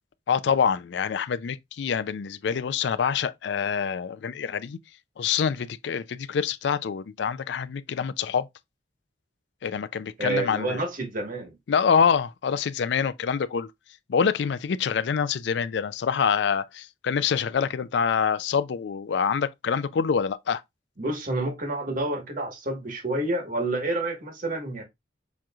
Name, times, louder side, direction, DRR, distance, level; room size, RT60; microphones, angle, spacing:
voice 1, 0.3-4.8 5.2-8.5 9.6-10.8 11.7-13.7 14.1-20.6, left 6 dB, 65° left, 0.4 m, -26 dB
voice 2, 10.2-11.5 21.0-24.8, right 2 dB, 45° right, 1.4 m, -29 dB
7.2 x 3.0 x 2.3 m
head